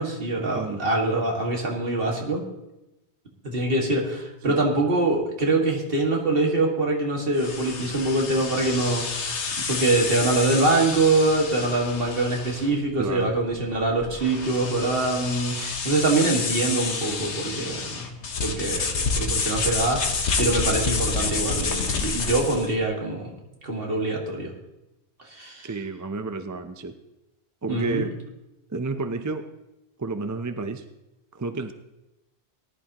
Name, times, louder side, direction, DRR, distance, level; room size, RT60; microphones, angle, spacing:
voice 1, 0.0-2.4 3.4-9.3 9.6-18.1 18.4-20.0 20.4-23.3 23.6-24.5 25.3-25.7 27.7-28.1, right 2 dB, 55° right, 0 dB, 2.2 m, -24 dB
sound 1, 7.4-22.7, left 4 dB, 80° left, 1.4 m, -29 dB
voice 2, 13.0-13.3 25.6-26.9 27.6-28.1 28.7-29.5 30.0-30.8 31.3-31.7, right 3 dB, 25° right, 9 dB, 0.4 m, -30 dB
19.0 x 11.0 x 3.0 m, 0.93 s
omnidirectional pair, 1.2 m